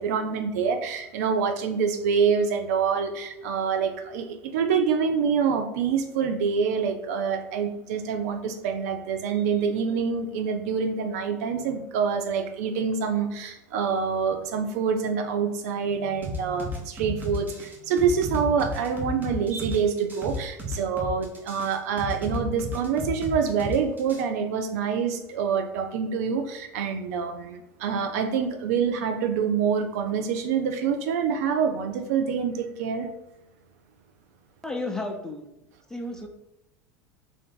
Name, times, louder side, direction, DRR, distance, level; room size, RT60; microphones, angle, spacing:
voice 1, 0.0-33.1, right 6 dB, 70° right, 7 dB, 0.5 m, -26 dB
sound 1, 16.2-24.2, left 2 dB, 20° right, 1.0 m, -33 dB
voice 2, 34.6-35.5 35.9-36.3, left 2 dB, 5° left, 3 dB, 0.7 m, -32 dB
3.3 x 2.6 x 3.8 m, 0.88 s
hypercardioid pair, 85°, 9 cm